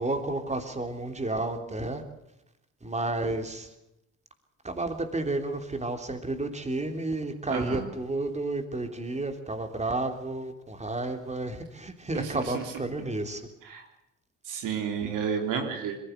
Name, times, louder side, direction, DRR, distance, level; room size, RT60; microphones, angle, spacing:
voice 1, 0.0-2.0 2.8-3.7 4.6-13.4 15.0-15.1, right 2 dB, 20° right, 6 dB, 3.4 m, -31 dB
voice 2, 7.5-7.8 12.1-12.6 13.6-13.8 14.5-16.0, right 6 dB, 80° right, 4 dB, 3.4 m, -31 dB
21.5 x 16.5 x 8.2 m, 0.84 s
cardioid pair, 75°, 31 cm